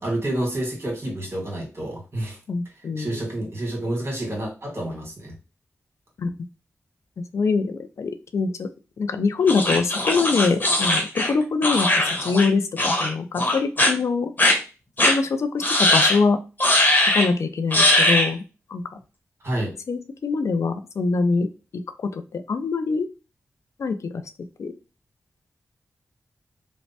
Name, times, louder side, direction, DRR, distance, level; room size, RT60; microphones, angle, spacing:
voice 1, 0.0-2.4 3.0-5.3 19.4-19.7, right 1 dB, 50° right, -1 dB, 1.6 m, -29 dB
voice 2, 2.5-3.2 6.2-6.3 7.2-8.7 9.0-14.3 15.1-16.4 17.0-18.4 18.7-18.8 19.9-21.5 22.0-23.1 23.8-24.2 24.6-24.7, left 4 dB, 70° left, 9 dB, 0.3 m, -24 dB
sound 1, 9.5-12.5 12.8-13.1 13.4-13.9 14.4-14.5 15.0-15.1 15.6-16.2 16.6-17.3 17.7-18.3, left 1 dB, 35° left, 1.1 m, -20 dB
3.1 x 2.1 x 2.8 m, 0.32 s
cardioid pair, 45°, 5 cm